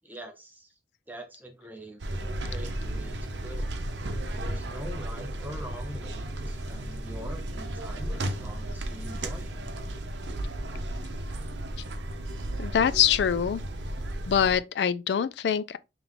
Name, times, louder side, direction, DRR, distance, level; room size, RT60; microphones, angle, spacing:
voice 1, 0.0-0.7 1.1-2.0 2.4-3.7 4.4-9.6, equal, 10° right, 0.6 m, -43 dB
sound 1, 2.0-14.6, right 1 dB, 85° right, 0.7 m, -34 dB
voice 2, 12.5-13.6 14.3-15.8, left 8 dB, 70° left, 0.3 m, -24 dB
3.5 x 3.1 x 3.7 m
head